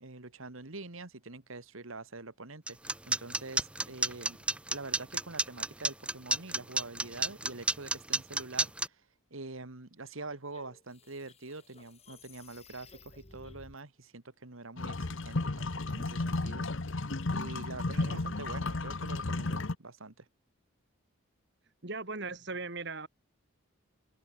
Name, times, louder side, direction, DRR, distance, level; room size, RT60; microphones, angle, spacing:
voice 1, 0.0-4.4 4.7-9.0 9.3-16.7 17.3-20.3, right 3 dB, 70° right, 1.9 m, -45 dB
sound 1, 2.7-8.9, right 2 dB, 5° right, 0.5 m, -30 dB
sound 2, 10.0-13.8, left 3 dB, 30° left, 4.4 m, -56 dB
sound 3, 14.8-19.8, left 2 dB, 60° left, 1.0 m, -33 dB
voice 2, 21.8-23.1, right 3 dB, 50° right, 2.4 m, -39 dB
open air
head